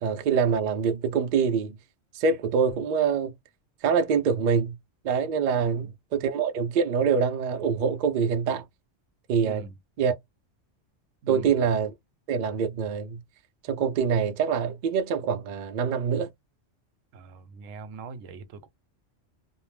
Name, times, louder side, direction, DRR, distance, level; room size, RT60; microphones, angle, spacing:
voice 1, 0.0-1.8 2.1-3.3 3.8-4.8 5.0-8.6 9.3-9.6 10.0-10.2 11.3-11.9 12.3-13.2 13.6-16.3, right 6 dB, 70° right, 0.4 m, -25 dB
voice 2, 5.6-5.9 9.4-9.7 11.2-11.6 17.1-18.7, right 5 dB, 85° right, 1.0 m, -42 dB
2.5 x 2.0 x 3.2 m
omnidirectional pair, 1.3 m